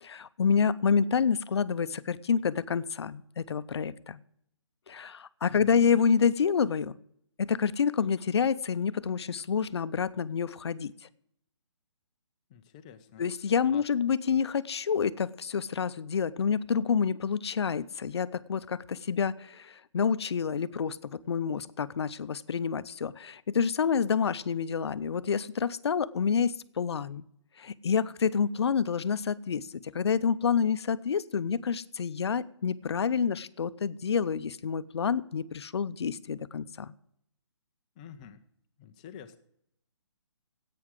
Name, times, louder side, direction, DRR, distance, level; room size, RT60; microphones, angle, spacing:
voice 1, 0.0-4.2 4.9-6.9 7.4-10.9 13.2-27.2 27.6-36.9, left 6 dB, 60° left, 15 dB, 0.6 m, -28 dB
voice 2, 5.5-5.8 12.5-13.2 13.7-13.9 38.0-38.4 38.8-39.4, left 8 dB, 15° left, 9 dB, 0.6 m, -48 dB
11.0 x 8.6 x 7.5 m, 0.74 s
hypercardioid pair, 165°, 16 cm